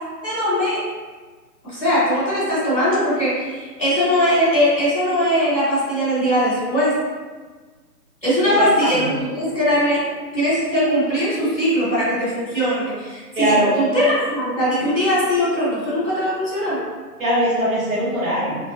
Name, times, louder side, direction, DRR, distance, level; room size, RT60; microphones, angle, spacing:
voice 1, 0.2-0.8 1.6-6.9 8.2-10.0 10.3-16.8, equal, 5° right, -19 dB, 0.9 m, -20 dB
voice 2, 8.6-9.2 13.3-13.7 17.2-18.6, right 1 dB, 55° right, -7 dB, 1.0 m, -21 dB
3.2 x 2.5 x 2.8 m, 1.4 s
figure-of-eight pair, 150°, 49 cm